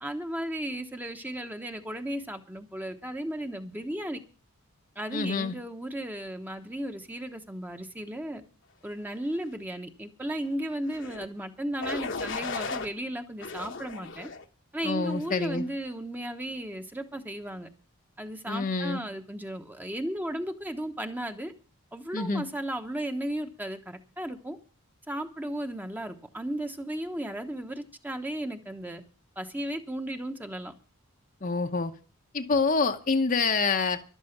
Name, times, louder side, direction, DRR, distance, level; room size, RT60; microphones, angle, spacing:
voice 1, 0.0-4.2 5.0-8.4 8.8-14.3 14.7-17.7 18.2-21.5 21.9-24.6 25.1-29.0 29.4-30.7, right 1 dB, 10° right, 1.0 m, -35 dB
voice 2, 5.1-5.6 14.8-15.6 18.5-19.0 22.1-22.5 31.4-31.9 32.3-34.0, left 4 dB, 40° left, 0.9 m, -27 dB
sound 1, 10.9-11.3 11.8-12.9 13.4-14.4 15.0-15.4, left 4 dB, 55° left, 1.2 m, -36 dB
13.0 x 12.0 x 5.9 m
head